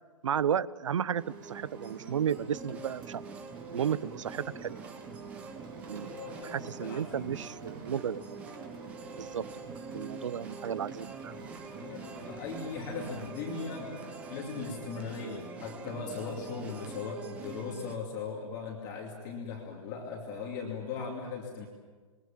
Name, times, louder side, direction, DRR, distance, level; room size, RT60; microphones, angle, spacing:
voice 1, 0.2-3.2 3.7-4.8 5.9-8.5 9.2-9.4 9.9-11.3, right 8 dB, 55° right, 20 dB, 0.8 m, -33 dB
sound 1, 1.2-18.0, right 4 dB, 5° right, 0.9 m, -44 dB
Rain, 1.3-14.3, right 4 dB, 35° right, 4.7 m, -54 dB
voice 2, 6.0-7.4 11.7-14.0 14.3-21.7, left 5 dB, 15° left, 0 dB, 2.6 m, -39 dB
28.0 x 22.0 x 7.4 m, 1.4 s
hypercardioid pair, 175°, 19 cm